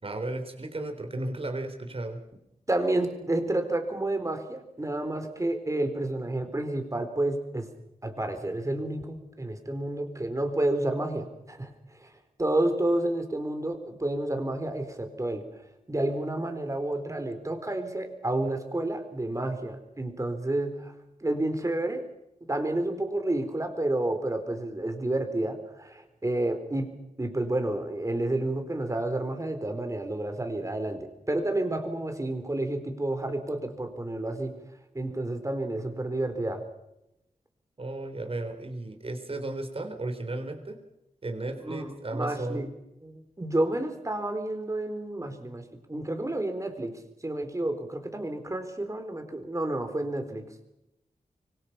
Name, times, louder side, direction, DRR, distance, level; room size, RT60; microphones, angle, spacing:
voice 1, 0.0-2.2 37.8-40.8 41.2-42.7, right 2 dB, 40° right, 5 dB, 3.8 m, -34 dB
voice 2, 2.7-7.7 8.0-11.7 12.0-12.1 12.4-15.5 15.9-20.9 21.2-22.0 22.5-26.9 27.2-34.5 34.9-36.6 41.6-42.7 43.0-50.5, right 1 dB, 20° right, 7 dB, 4.2 m, -30 dB
25.0 x 24.5 x 5.9 m, 0.87 s
wide cardioid pair, 110°, 15 cm